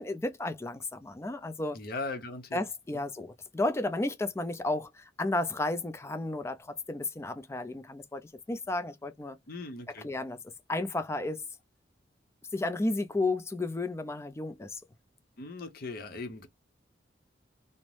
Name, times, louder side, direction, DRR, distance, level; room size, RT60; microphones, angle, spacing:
voice 1, 0.0-1.8 2.5-9.4 10.0-10.4 10.7-11.4 12.5-14.8, left 2 dB, 15° left, 0.3 m, -33 dB
voice 2, 1.7-2.6 2.9-3.0 9.5-10.1 15.4-16.5, left 3 dB, 55° left, 0.7 m, -39 dB
2.5 x 2.0 x 3.2 m
head